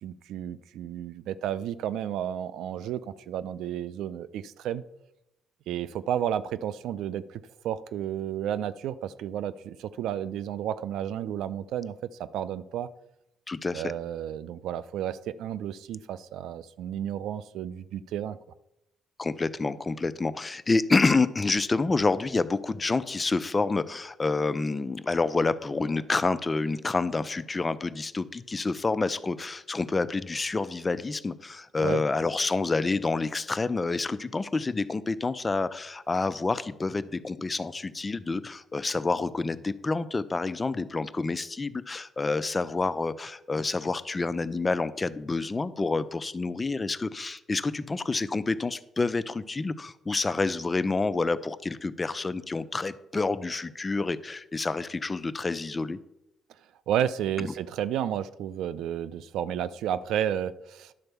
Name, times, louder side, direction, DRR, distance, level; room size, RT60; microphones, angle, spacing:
voice 1, 0.0-4.8 5.7-12.9 13.7-18.4 31.8-32.0 56.9-60.9, right 10 dB, 85° right, 16 dB, 0.4 m, -32 dB
voice 2, 13.5-13.8 19.2-56.0 57.4-57.5, left 3 dB, 25° left, 14 dB, 0.5 m, -28 dB
10.5 x 4.4 x 6.9 m, 0.89 s
cardioid pair, 90°, 0 cm